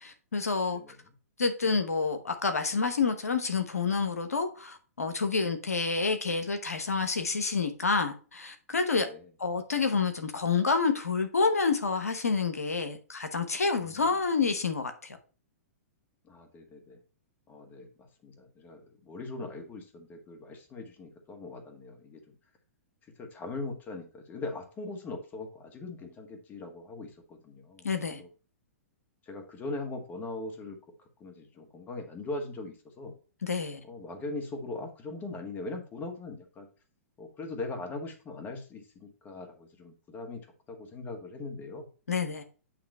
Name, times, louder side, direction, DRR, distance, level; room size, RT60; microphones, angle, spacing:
voice 1, 0.0-0.8 1.4-9.1 9.4-15.2 27.8-28.2 33.4-33.8 42.1-42.4, left 4 dB, 90° left, 1.0 m, -28 dB
voice 2, 16.2-17.0 17.5-22.2 23.1-27.9 28.2-28.3 29.2-30.8 31.2-33.1 33.8-36.7 37.2-41.9, left 2 dB, 20° left, 1.7 m, -40 dB
8.9 x 3.0 x 5.3 m
hypercardioid pair, 115°, 8 cm